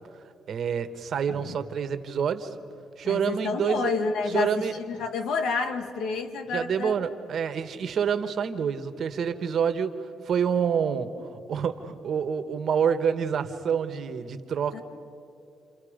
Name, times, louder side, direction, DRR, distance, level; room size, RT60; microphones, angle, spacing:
voice 1, 0.5-2.5 3.0-3.9 4.3-4.7 6.5-10.0 10.2-11.1 11.5-14.8, right 7 dB, 60° right, 9 dB, 1.4 m, -27 dB
voice 2, 3.0-7.0 14.7-14.8, left 4 dB, 80° left, 7 dB, 1.7 m, -29 dB
29.5 x 28.0 x 5.2 m, 2.6 s
cardioid pair, 90°, 0 cm